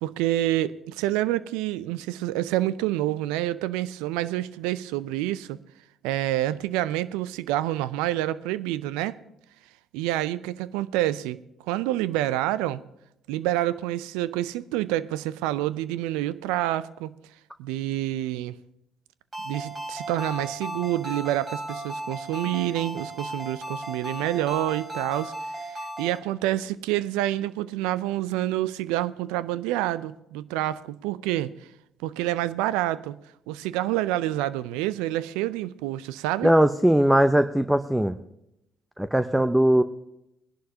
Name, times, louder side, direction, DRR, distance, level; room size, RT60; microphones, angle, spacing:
voice 1, 0.0-5.6 6.0-9.1 9.9-11.4 11.7-12.8 13.3-17.2 17.6-18.5 19.4-31.5 32.0-33.2 33.5-36.5, right 14 dB, 75° right, 0.4 m, -28 dB
Ringtone, 19.3-26.2, right 1 dB, 30° right, 3.3 m, -35 dB
voice 2, 36.4-38.2 39.0-39.8, right 1 dB, 5° right, 0.6 m, -20 dB
20.0 x 11.0 x 2.8 m
hypercardioid pair, 50°, 0 cm